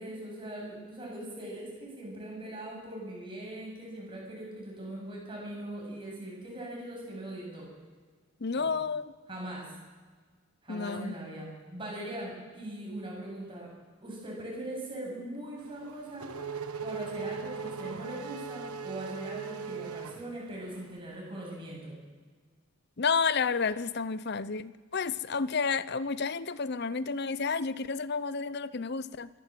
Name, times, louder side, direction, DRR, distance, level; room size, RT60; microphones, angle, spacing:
voice 1, 0.0-7.7 8.6-8.7 9.3-9.7 10.6-13.7 14.0-16.3 16.8-21.9, right 1 dB, 20° right, -3 dB, 7.9 m, -40 dB
voice 2, 8.4-9.1 10.7-11.2 23.0-29.3, left 5 dB, 45° left, 16 dB, 0.7 m, -31 dB
Race car auto racing / Accelerating revving vroom, 15.6-20.9, right 5 dB, 80° right, 1.2 m, -39 dB
24.0 x 15.5 x 7.7 m, 1.5 s
head